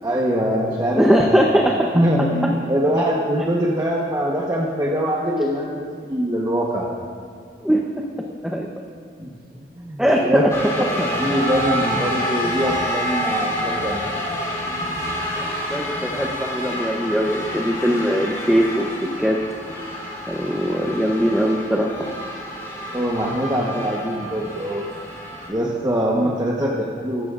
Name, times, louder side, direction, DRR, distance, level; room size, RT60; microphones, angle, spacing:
voice 1, 0.0-6.9 9.2-9.3 9.8-10.5 10.8-14.1 22.9-24.8 25.5-27.3, equal, 20° right, -4 dB, 1.0 m, -23 dB
voice 2, 1.0-1.8 7.6-7.8 8.4-8.7 10.0-10.5 11.0-11.1 15.4-18.9 19.2-19.4 20.3-22.0 26.2-26.4, equal, 5° right, -1 dB, 0.7 m, -20 dB
sound 1, 10.5-25.5, equal, 20° left, 3.7 m, -28 dB
23.0 x 11.5 x 2.5 m, 2.5 s
head